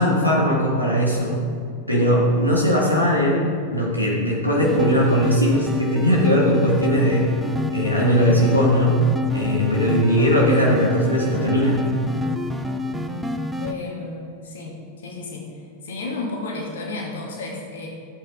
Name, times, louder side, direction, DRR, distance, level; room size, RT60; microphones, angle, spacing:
voice 1, 0.0-1.4 1.9-7.4 7.7-8.9 9.3-11.9, equal, 90° left, -5 dB, 2.2 m, -19 dB
sound 1, 4.6-13.7, left 2 dB, 5° right, 0.9 m, -28 dB
voice 2, 13.6-15.5 15.8-17.9, left 3 dB, 60° left, -2 dB, 2.5 m, -32 dB
15.5 x 8.5 x 3.9 m, 2.3 s
figure-of-eight pair, 90°, 0 cm